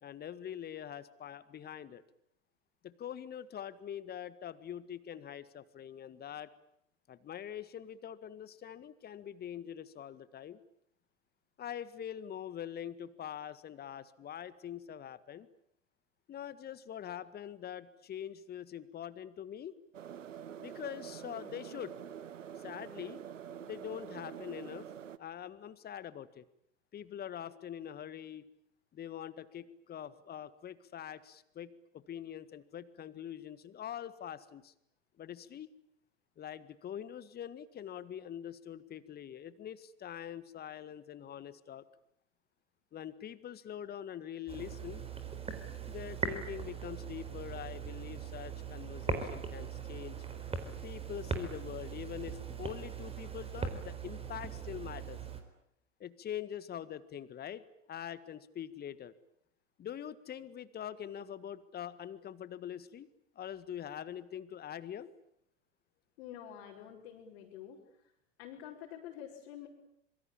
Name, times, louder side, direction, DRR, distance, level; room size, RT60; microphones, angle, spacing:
voice 1, 0.0-2.0 2.8-6.5 7.1-10.6 11.6-15.5 16.3-19.8 20.6-22.0 22.6-23.2 23.6-24.9 25.2-26.4 26.9-28.4 28.9-34.7 35.2-35.7 36.4-41.8 42.9-45.0 45.9-50.2 50.8-55.2 56.0-57.6 57.9-59.1 59.8-63.1 63.4-65.1, left 10 dB, 25° left, 16 dB, 1.7 m, -44 dB
sound 1, 19.9-25.2, right 9 dB, 75° right, 1.2 m, -46 dB
sound 2, 44.5-55.4, right 5 dB, 15° right, 4.1 m, -40 dB
voice 2, 66.2-67.8 68.4-69.7, left 10 dB, 50° left, -3 dB, 5.5 m, -47 dB
26.0 x 23.5 x 8.8 m, 0.75 s
figure-of-eight pair, 90°, 38 cm